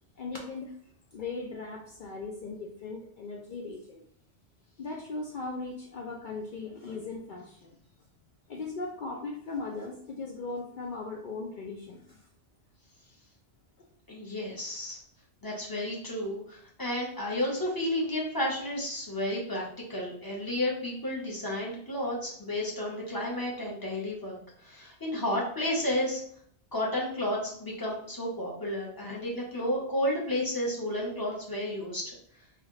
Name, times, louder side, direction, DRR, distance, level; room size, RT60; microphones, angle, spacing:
voice 1, 0.2-0.7 1.1-4.0 4.8-7.7 8.5-12.2, left 3 dB, 60° left, 1 dB, 0.5 m, -38 dB
voice 2, 14.1-15.0 15.4-19.6 19.9-26.2 26.7-32.2, left 1 dB, 20° left, -4 dB, 0.9 m, -32 dB
4.1 x 2.5 x 3.1 m, 0.64 s
omnidirectional pair, 1.2 m